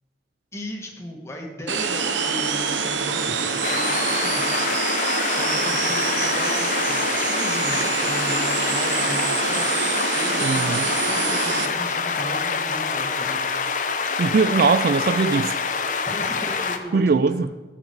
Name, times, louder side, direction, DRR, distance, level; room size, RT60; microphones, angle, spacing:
voice 1, 0.5-4.6 5.0-13.5 16.0-17.6, equal, 15° left, 1.6 m, -36 dB
sound 1, 1.7-11.7, right 5 dB, 80° right, 1.0 m, -25 dB
sound 2, 3.6-16.8, left 5 dB, 40° left, 0.8 m, -26 dB
voice 2, 10.4-10.9 14.2-15.5 16.9-17.5, right 4 dB, 50° right, 0.3 m, -20 dB
13.0 x 5.9 x 8.0 m
head